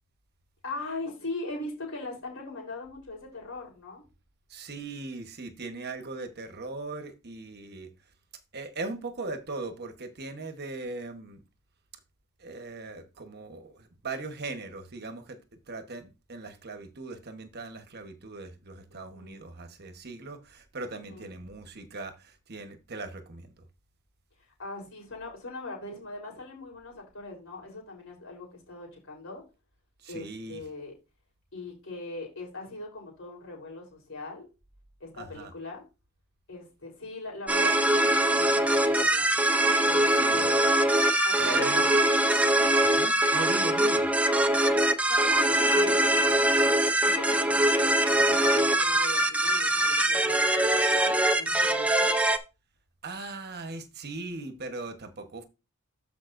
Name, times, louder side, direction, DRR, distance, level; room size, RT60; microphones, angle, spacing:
voice 1, 0.6-4.0 18.9-19.4 21.0-21.3 24.6-29.4 30.1-30.9 31.5-34.5 35.0-35.8 36.5-39.3 39.8-40.7 41.2-42.0 45.1-52.1, left 2 dB, 65° left, 3.8 m, -40 dB
voice 2, 4.5-7.9 8.5-11.4 12.4-23.5 30.0-30.6 35.1-35.5 40.1-40.5 41.4-41.9 42.8-44.1 53.0-55.4, right 3 dB, 50° right, 1.2 m, -39 dB
sound 1, 37.5-52.4, right 1 dB, 5° right, 0.6 m, -23 dB
13.5 x 5.2 x 2.6 m
head